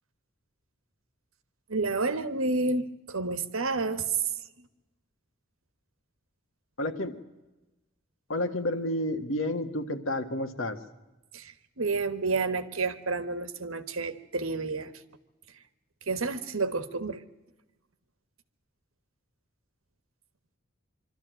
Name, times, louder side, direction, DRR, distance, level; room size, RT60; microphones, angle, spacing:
voice 1, 1.7-4.0 11.3-11.4 11.8-14.9 16.1-17.2, right 3 dB, 85° right, 11 dB, 1.4 m, -30 dB
voice 2, 6.8-7.2 8.3-10.8, left 1 dB, 70° left, 8 dB, 1.7 m, -30 dB
24.5 x 13.5 x 9.2 m, 1.1 s
head